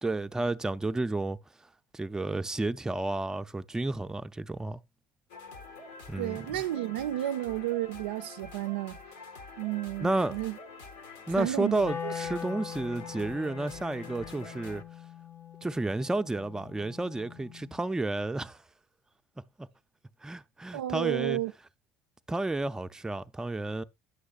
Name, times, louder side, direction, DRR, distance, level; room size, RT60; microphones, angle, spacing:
voice 1, 0.0-1.4 1.9-4.8 6.1-6.5 10.0-10.4 11.3-14.8 15.6-18.6 19.6-19.7 20.2-21.4 22.3-23.8, right 2 dB, 10° right, 0.4 m, -31 dB
sound 1, 5.3-14.8, left 3 dB, 85° left, 1.0 m, -47 dB
voice 2, 6.2-9.0 9.6-10.6 11.4-12.1 20.7-21.5, right 14 dB, 90° right, 0.4 m, -32 dB
Wind instrument woodwind instrument, 11.8-17.9, left 8 dB, 45° left, 0.6 m, -42 dB
9.7 x 6.4 x 2.3 m
hypercardioid pair, 75°, 6 cm